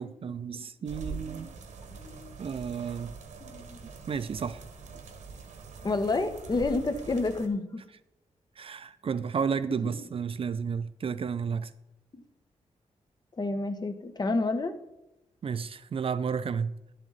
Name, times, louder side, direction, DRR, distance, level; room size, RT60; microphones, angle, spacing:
voice 1, 0.0-1.5 2.4-3.1 4.1-4.6 8.6-11.7 15.4-16.9, right 6 dB, 50° right, 0.5 m, -32 dB
sound 1, 0.9-7.5, right 4 dB, 90° right, 1.5 m, -44 dB
voice 2, 1.9-2.3 3.5-3.8 5.8-7.8 13.4-14.7, left 3 dB, 35° left, 1.1 m, -29 dB
11.5 x 7.6 x 4.0 m
wide cardioid pair, 120°, 12 cm